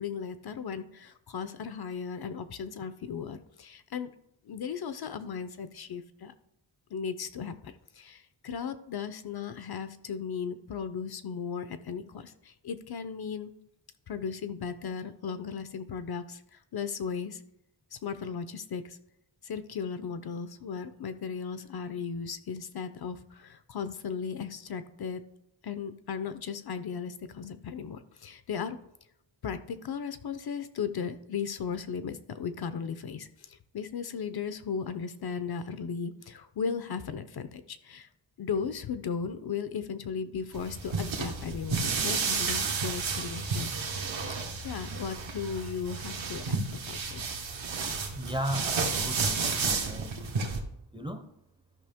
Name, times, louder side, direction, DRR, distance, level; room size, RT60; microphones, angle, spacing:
voice 1, 0.0-4.1 4.4-6.3 6.9-13.5 14.1-17.4 17.9-19.0 19.4-25.2 25.6-28.8 29.4-38.1 38.4-43.7 44.6-47.3, left 6 dB, 55° left, 11 dB, 0.6 m, -36 dB
sound 1, 40.5-50.6, right 4 dB, 80° right, 1.3 m, -31 dB
voice 2, 48.1-49.5 49.8-50.2 50.9-51.2, equal, 10° right, 7 dB, 0.5 m, -35 dB
13.0 x 5.5 x 3.5 m, 0.81 s
wide cardioid pair, 160°, 46 cm